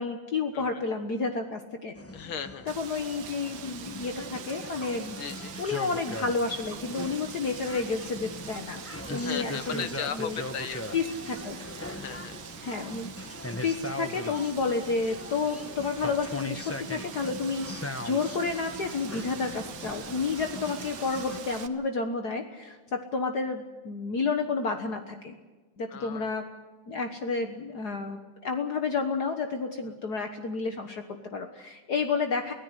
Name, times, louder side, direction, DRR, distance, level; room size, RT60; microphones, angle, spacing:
voice 1, 0.0-1.9 2.8-5.2 5.6-9.8 10.2-10.4 10.9-11.6 12.6-13.1 13.6-25.4 25.8-26.4 26.9-32.5, left 4 dB, 55° left, 5 dB, 1.8 m, -31 dB
sound 1, 2.0-21.4, left 1 dB, 15° left, 0.5 m, -40 dB
voice 2, 2.1-2.8 5.2-5.5 9.1-10.8 11.9-12.4 25.9-26.3 29.9-30.0, left 7 dB, 85° left, 11 dB, 2.2 m, -37 dB
Wind, 2.7-21.7, right 8 dB, 70° right, 1.8 m, -44 dB
24.5 x 17.0 x 8.1 m, 1.3 s
omnidirectional pair, 2.2 m